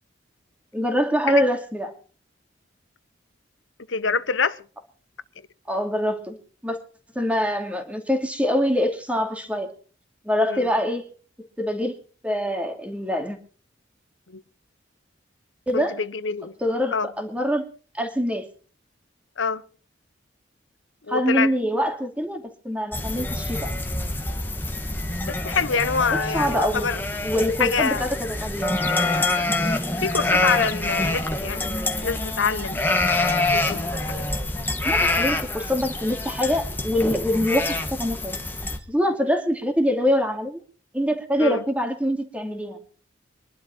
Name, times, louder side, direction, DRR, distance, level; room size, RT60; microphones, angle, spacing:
voice 1, 0.7-1.9 5.7-6.4 6.6-6.8 7.1-9.7 10.2-11.0 11.6-11.9 12.2-13.4 15.7-16.0 16.6-17.6 17.9-18.4 21.1-23.7 26.3-26.9 27.2-28.7 34.8-38.4 38.9-40.6 40.9-42.8, equal, 5° right, 2.6 m, -24 dB
voice 2, 3.9-4.6 10.5-10.7 14.3-14.4 15.7-16.6 16.9-17.1 19.4-19.6 21.1-21.5 25.3-27.0 27.6-28.0 29.6-34.3 41.4-41.6, left 5 dB, 80° left, 1.0 m, -26 dB
sound 1, 22.9-38.8, left 2 dB, 10° left, 1.6 m, -26 dB
24.0 x 11.5 x 4.5 m
head